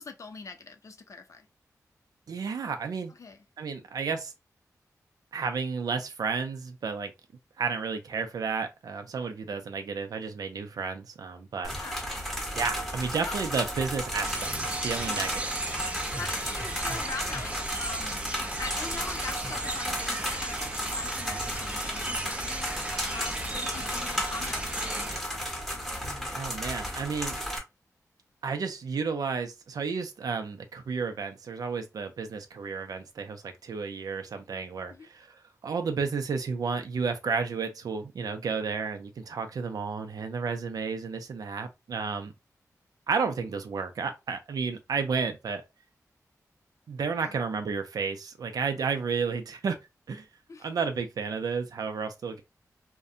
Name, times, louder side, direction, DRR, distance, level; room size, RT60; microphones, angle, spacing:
voice 1, 0.0-1.5 3.1-3.4 11.8-12.1 13.2-13.4 15.0-15.4 16.2-18.2 18.6-22.7 23.1-24.9 34.9-35.1 47.2-47.4 50.5-50.7, left 4 dB, 55° left, 0.5 m, -42 dB
voice 2, 2.3-3.1 3.6-4.3 5.3-7.1 7.6-11.7 12.5-15.3 26.3-27.3 28.4-42.3 43.1-45.6 46.9-49.8 50.1-50.2 50.6-52.4, right 5 dB, 85° right, 0.5 m, -32 dB
sound 1, 11.6-27.6, equal, ahead, 0.8 m, -34 dB
sound 2, 14.2-25.2, right 2 dB, 20° right, 0.4 m, -36 dB
sound 3, 15.8-22.1, right 2 dB, 85° left, 1.0 m, -46 dB
2.6 x 2.1 x 2.4 m
wide cardioid pair, 85°, 6 cm